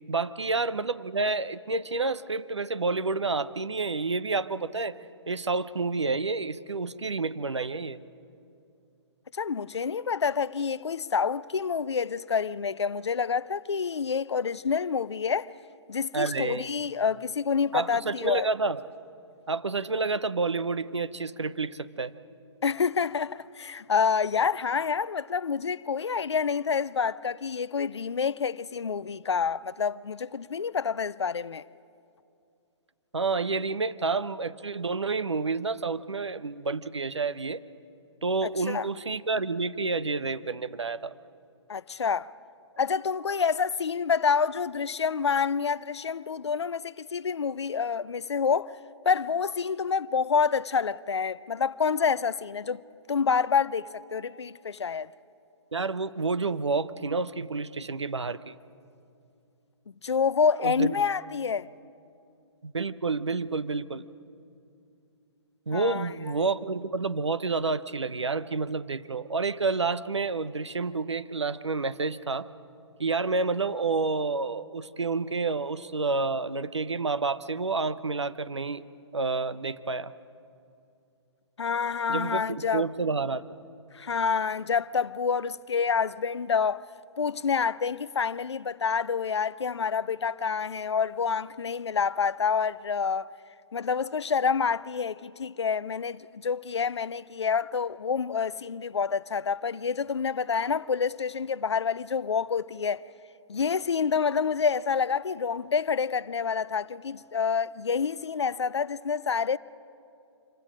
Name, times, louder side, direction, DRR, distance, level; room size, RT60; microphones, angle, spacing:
voice 1, 0.1-5.0 5.3-8.0 16.1-16.7 17.7-18.8 19.5-22.1 33.1-37.6 38.2-41.1 55.7-58.6 60.6-60.9 62.6-64.1 65.7-72.5 73.0-78.8 79.1-80.1 82.1-83.5, right 3 dB, 75° right, 0.8 m, -29 dB
voice 2, 9.3-15.5 15.9-18.5 22.6-31.6 38.7-38.9 41.7-42.3 42.8-48.7 49.1-52.8 53.1-55.1 60.0-61.7 65.7-66.1 81.6-82.9 83.9-86.8 87.2-93.3 93.7-103.0 103.5-109.6, left 6 dB, 70° left, 0.5 m, -28 dB
25.5 x 23.5 x 5.1 m
figure-of-eight pair, 130°, 15 cm